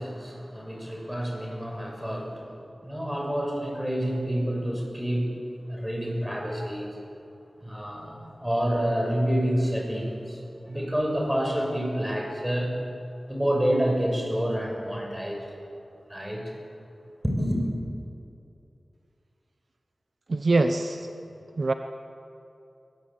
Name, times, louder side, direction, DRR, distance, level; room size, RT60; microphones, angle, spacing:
voice 1, 0.0-2.5 2.8-5.4 5.7-7.0 7.6-12.7 13.3-15.5 16.1-16.5 17.2-17.6, equal, 5° right, 1 dB, 6.1 m, -28 dB
voice 2, 20.3-21.1 21.6-21.7, right 3 dB, 60° right, 7 dB, 1.0 m, -23 dB
21.5 x 20.0 x 8.6 m, 2.7 s
wide cardioid pair, 80°, 0 cm